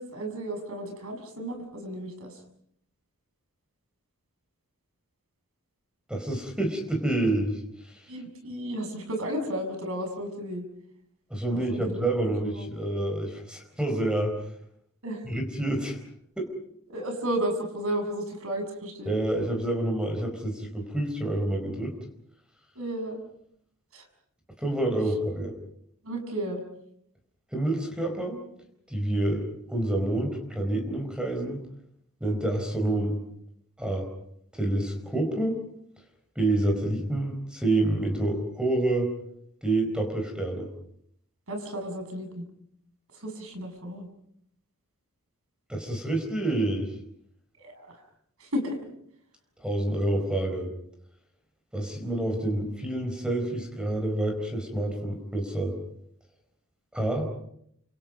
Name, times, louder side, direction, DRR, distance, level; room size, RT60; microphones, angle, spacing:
voice 1, 0.0-2.4 8.1-10.6 11.5-11.9 12.5-12.7 15.0-15.2 16.9-19.2 22.7-23.2 23.9-24.1 26.0-26.6 41.5-42.4 43.1-44.1 47.6-47.9 48.4-48.8, right 1 dB, 70° right, 4 dB, 6.8 m, -33 dB
voice 2, 6.1-8.0 11.3-14.4 15.2-16.0 16.4-16.5 19.0-22.0 24.6-25.5 27.5-28.4 28.9-31.6 32.2-33.2 33.8-34.1 34.5-35.6 36.4-39.1 39.6-40.7 45.7-46.9 49.6-50.7 51.7-55.7 56.9-57.3, right 1 dB, 5° right, 4 dB, 4.6 m, -28 dB
29.5 x 26.5 x 5.4 m, 0.71 s
head